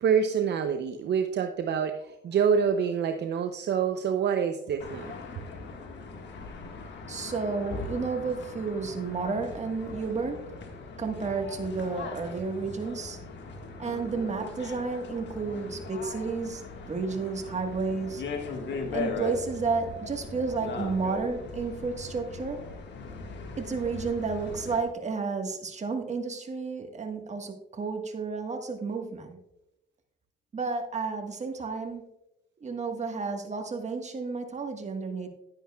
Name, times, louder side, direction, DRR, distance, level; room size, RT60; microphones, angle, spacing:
voice 1, 0.0-5.1, right 7 dB, 60° right, 7 dB, 0.6 m, -26 dB
sound 1, 4.8-24.8, left 4 dB, 65° left, 1.6 m, -39 dB
voice 2, 7.1-10.4 11.0-13.2 13.8-16.6 16.9-18.2 18.9-22.6 23.6-29.4 30.5-32.0 32.6-35.3, right 4 dB, 35° right, 4 dB, 1.4 m, -31 dB
10.5 x 9.9 x 2.3 m, 0.91 s
cardioid pair, 90°, 20 cm